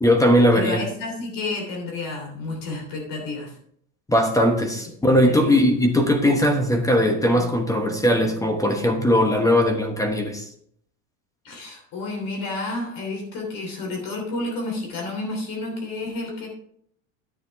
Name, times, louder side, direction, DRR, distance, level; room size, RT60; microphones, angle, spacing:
voice 1, 0.0-0.8 4.1-10.5, equal, 10° left, 5 dB, 1.0 m, -19 dB
voice 2, 0.5-3.6 5.1-5.6 11.4-16.5, left 2 dB, 45° left, 1 dB, 3.3 m, -30 dB
10.5 x 8.8 x 3.5 m, 0.67 s
supercardioid pair, 135°, 44 cm